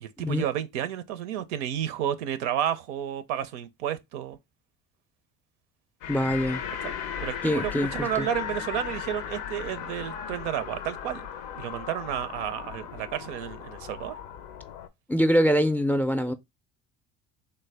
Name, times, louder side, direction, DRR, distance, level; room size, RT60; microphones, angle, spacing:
voice 1, 0.0-4.4 6.8-11.2 11.6-14.1, right 10 dB, 90° right, 0.5 m, -31 dB
sound 1, 6.0-14.9, left 8 dB, 85° left, 0.5 m, -37 dB
voice 2, 6.1-6.6 7.4-8.3 15.1-16.3, equal, 5° left, 0.4 m, -24 dB
3.2 x 2.2 x 3.3 m
supercardioid pair, 75°, 34 cm